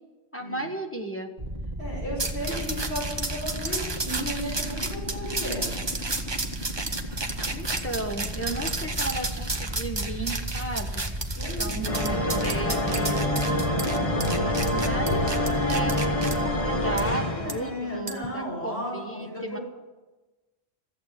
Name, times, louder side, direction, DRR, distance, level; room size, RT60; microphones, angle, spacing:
voice 1, 0.3-1.3 2.5-2.7 7.5-11.1 11.6-13.5 14.7-19.6, right 2 dB, 10° left, 2 dB, 1.2 m, -34 dB
sound 1, 1.4-17.2, right 1 dB, 40° right, 2.3 m, -34 dB
voice 2, 1.8-5.7 11.3-12.3 17.3-19.6, equal, 70° left, -5 dB, 5.8 m, -35 dB
sound 2, 2.2-16.3 17.0-17.1 17.5-17.6 18.1-18.3, right 3 dB, 25° right, 1.0 m, -32 dB
sound 3, 11.9-17.9, left 1 dB, 30° left, 1.4 m, -26 dB
14.0 x 8.2 x 9.9 m, 1.2 s
omnidirectional pair, 1.1 m